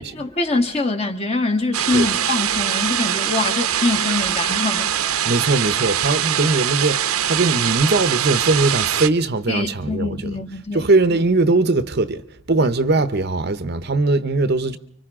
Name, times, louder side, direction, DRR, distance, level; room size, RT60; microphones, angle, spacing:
voice 1, 0.0-4.9 9.5-10.8, left 2 dB, 30° left, 1.5 m, -24 dB
sound 1, 1.7-9.1, right 10 dB, 85° right, 0.8 m, -22 dB
voice 2, 5.2-10.4 10.7-12.2 12.5-14.8, right 3 dB, 50° right, 0.8 m, -20 dB
30.0 x 25.0 x 3.6 m
head